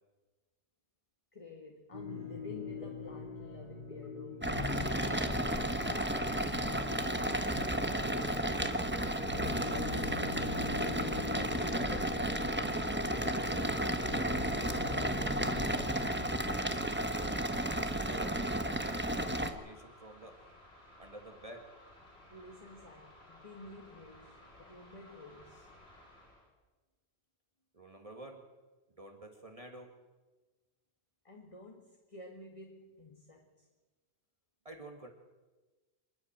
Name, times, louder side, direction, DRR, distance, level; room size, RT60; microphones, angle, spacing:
voice 1, 1.3-4.6 12.7-15.9 22.3-25.7 31.2-33.7, left 2 dB, 30° left, 1 dB, 2.0 m, -51 dB
sound 1, 1.9-16.1, left 4 dB, 45° left, 3.2 m, -43 dB
sound 2, 4.4-19.5, right 1 dB, 10° right, 1.2 m, -33 dB
voice 2, 6.0-8.8 9.7-10.8 11.2-12.1 17.0-17.5 17.9-18.4 18.8-20.4 21.0-21.7 27.7-28.4 29.0-29.9 34.6-35.1, right 1 dB, 30° right, 2 dB, 2.1 m, -49 dB
sound 3, 9.5-26.5, left 1 dB, 70° left, 4.2 m, -59 dB
26.5 x 11.0 x 8.8 m, 1.2 s
omnidirectional pair, 1.1 m